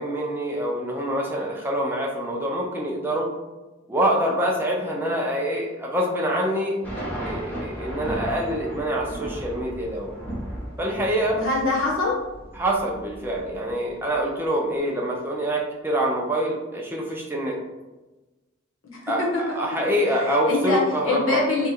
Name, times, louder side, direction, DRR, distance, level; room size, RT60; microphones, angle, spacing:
voice 1, 0.0-3.3 3.9-6.8 7.2-10.1 10.8-11.4 12.5-17.6 19.1-21.4, right 1 dB, 10° right, -2 dB, 0.4 m, -25 dB
sound 1, 6.8-14.2, right 1 dB, 10° left, 0.8 m, -35 dB
voice 2, 11.3-12.1 18.8-19.0 19.5-19.6 20.5-21.7, left 3 dB, 85° left, -3 dB, 1.1 m, -24 dB
2.9 x 2.4 x 4.2 m, 1.1 s
head